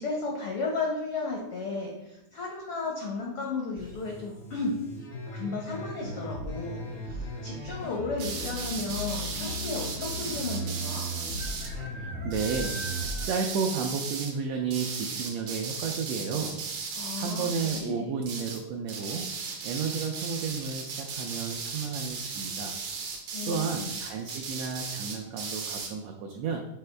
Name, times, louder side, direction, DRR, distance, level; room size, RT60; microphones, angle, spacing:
voice 1, 0.0-4.8 5.3-11.0 16.9-18.1 23.3-23.8, left 3 dB, 85° left, -1 dB, 1.2 m, -34 dB
sound 1, 3.8-13.3, equal, 65° left, 0.7 m, -37 dB
sound 2, 3.8-4.3 6.1-6.5 6.7-6.8 7.1-7.6 8.4-8.5 8.7-8.8 10.3-10.4 11.3-13.6 14.0-14.1 14.6-14.7 15.1-15.2, equal, 50° right, 0.6 m, -45 dB
sound 3, 8.2-11.7 12.3-14.3 14.7-17.9 18.2-18.6 18.9-25.9, right 5 dB, 75° right, 1.2 m, -36 dB
voice 2, 11.8-16.6 17.2-19.3 19.6-22.8 23.5-26.7, right 5 dB, 90° right, 3 dB, 1.4 m, -32 dB
6.7 x 4.5 x 3.3 m, 0.92 s
omnidirectional pair, 3.6 m